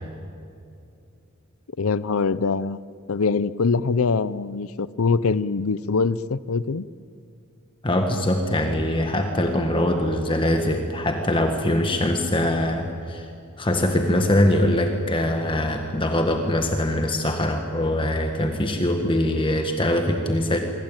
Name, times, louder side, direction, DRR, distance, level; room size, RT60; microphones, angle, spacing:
voice 1, 1.8-6.9, left 4 dB, 85° left, 17 dB, 0.6 m, -23 dB
voice 2, 7.8-13.3 13.6-20.6, left 1 dB, 25° left, 5 dB, 1.6 m, -22 dB
26.5 x 23.5 x 9.0 m, 2.6 s
head